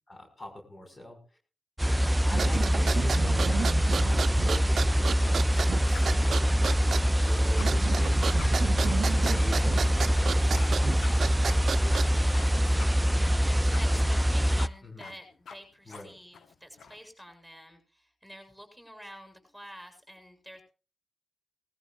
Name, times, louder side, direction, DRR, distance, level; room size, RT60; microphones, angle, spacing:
voice 1, 0.1-1.2 2.2-3.5 4.1-8.5 9.2-13.4 13.9-14.1 14.8-15.1 15.9-16.1, left 1 dB, 30° left, 3 dB, 6.0 m, -44 dB
sound 1, 1.8-14.7, equal, 10° right, 0.6 m, -24 dB
sound 2, 2.3-12.3, right 6 dB, 65° right, 0.8 m, -33 dB
sound 3, 5.9-6.7 7.0-7.7 8.0-8.1 8.4-8.5 8.8-9.9 10.2-10.3 10.6-10.7 11.0-11.1 11.5-11.6 11.9-12.5 12.8-12.9 13.2-13.9 14.1-14.3 14.6-14.7 15.0-15.2 15.5-15.6 15.9-16.0 16.3-17.0, left 6 dB, 80° left, 1.5 m, -45 dB
voice 2, 8.2-9.2 9.4-9.8 10.3-10.4 13.2-20.7, equal, 5° left, 7 dB, 7.3 m, -49 dB
21.0 x 14.5 x 2.6 m, 0.35 s
cardioid pair, 65°, 0 cm